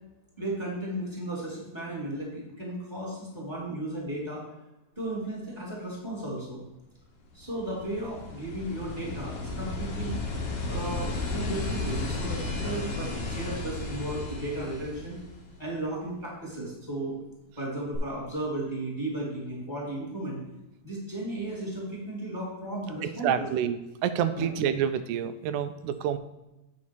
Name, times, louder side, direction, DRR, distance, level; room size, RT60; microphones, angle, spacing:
voice 1, 0.4-4.4 5.0-6.6 7.3-10.2 10.6-15.2 15.6-17.2 17.6-20.4 20.8-23.5 24.3-24.5, right 1 dB, 10° left, -5 dB, 2.1 m, -35 dB
sound 1, 7.3-15.8 17.9-18.0, left 3 dB, 60° left, 2.1 m, -34 dB
voice 2, 23.2-26.2, right 9 dB, 90° right, 10 dB, 2.0 m, -28 dB
8.3 x 4.9 x 4.6 m, 0.99 s
omnidirectional pair, 3.4 m